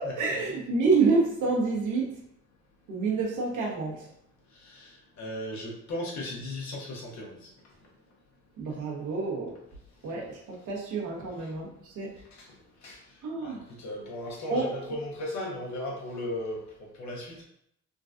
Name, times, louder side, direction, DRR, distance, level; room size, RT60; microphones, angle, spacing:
voice 1, 0.0-2.1 2.9-4.1 8.6-9.5 10.0-10.4 10.7-12.1 13.2-13.6 14.5-14.8, right 4 dB, 80° right, -3 dB, 1.1 m, -28 dB
voice 2, 4.6-7.5 12.8-13.0 13.4-16.6 17.0-17.4, left 1 dB, 65° left, -2 dB, 1.2 m, -36 dB
3.8 x 2.5 x 2.5 m, 0.72 s
cardioid pair, 90°, 30 cm